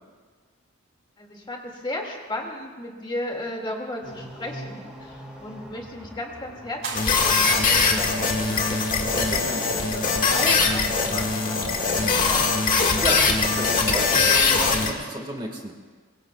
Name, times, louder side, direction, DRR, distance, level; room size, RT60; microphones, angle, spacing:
voice 1, 1.2-8.8 9.2-12.6, left 1 dB, 25° left, 0 dB, 2.2 m, -35 dB
sound 1, 4.0-11.9, equal, 5° right, 2.7 m, -44 dB
sound 2, 6.8-8.1 9.1-10.0 10.9-12.6, right 3 dB, 70° right, 5.6 m, -40 dB
sound 3, 6.9-14.9, left 4 dB, 40° left, 1.8 m, -21 dB
voice 2, 9.1-9.7 13.0-15.7, right 1 dB, 25° right, 2 dB, 1.6 m, -32 dB
23.5 x 23.0 x 2.3 m, 1.5 s
head